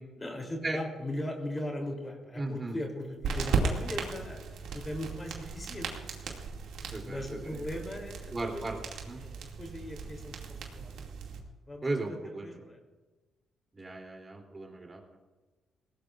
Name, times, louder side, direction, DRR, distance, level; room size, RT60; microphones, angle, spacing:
voice 1, 0.2-5.9 7.0-8.6 9.2-11.0 11.7-12.8, left 1 dB, 20° left, 1 dB, 3.3 m, -39 dB
voice 2, 2.4-2.8 6.9-7.6 8.3-8.8 9.1-9.2 11.8-12.5 13.7-15.2, right 2 dB, 25° right, 1 dB, 3.2 m, -36 dB
sound 1, 3.2-11.4, right 5 dB, 80° right, 2.4 m, -36 dB
21.0 x 18.0 x 2.6 m, 1.3 s
cardioid pair, 90°, 0 cm